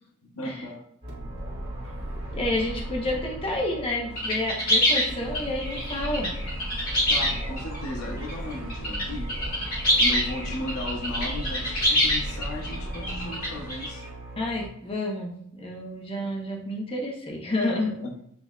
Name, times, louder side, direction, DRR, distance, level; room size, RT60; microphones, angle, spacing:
voice 1, 0.2-0.8 7.1-9.3 10.0-14.0 18.0-18.2, left 2 dB, 85° left, 2 dB, 0.8 m, -35 dB
sound 1, 1.0-14.7, right 1 dB, 50° right, 1.4 m, -36 dB
voice 2, 2.3-6.3 14.4-17.9, left 1 dB, 25° left, -1 dB, 0.9 m, -29 dB
sound 2, 4.2-7.8 8.3-9.0 9.3-13.9, equal, 45° left, 1.6 m, -25 dB
7.6 x 2.9 x 2.3 m, 0.73 s
head